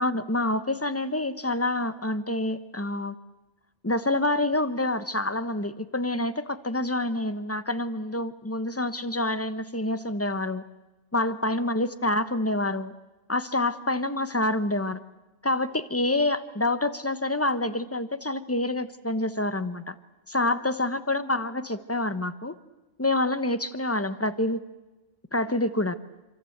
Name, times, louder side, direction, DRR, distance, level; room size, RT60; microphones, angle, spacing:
voice 1, 0.0-3.2 3.8-10.6 11.1-12.9 13.3-15.0 15.4-19.9 20.3-22.6 23.0-24.6 25.3-26.0, left 2 dB, 10° left, 12 dB, 1.0 m, -27 dB
27.0 x 26.0 x 8.1 m, 1.1 s
omnidirectional pair, 1.5 m